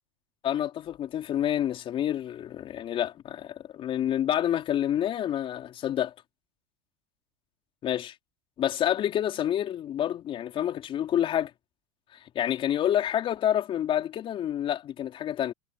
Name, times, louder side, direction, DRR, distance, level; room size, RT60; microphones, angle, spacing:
voice 1, 0.4-6.1 7.8-8.1 8.6-11.5 12.3-15.5, left 11 dB, 35° left, 4.5 m, -28 dB
hypercardioid pair, 110°, 15 cm